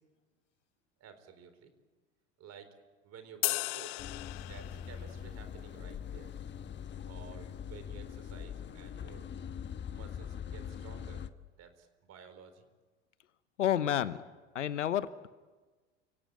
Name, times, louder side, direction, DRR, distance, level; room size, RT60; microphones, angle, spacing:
voice 1, 1.0-1.7 2.4-2.7 3.0-3.9 4.4-6.3 7.0-9.3 9.9-11.2 11.6-12.7, right 7 dB, 45° right, 10 dB, 4.4 m, -53 dB
sound 1, 3.4-5.0, left 22 dB, 65° left, 0.9 m, -35 dB
sound 2, 4.0-11.3, left 8 dB, 30° left, 1.2 m, -42 dB
voice 2, 13.6-14.2 14.5-15.3, left 10 dB, 90° left, 15 dB, 1.0 m, -30 dB
30.0 x 17.5 x 9.0 m, 1.3 s
hypercardioid pair, 80°, 35 cm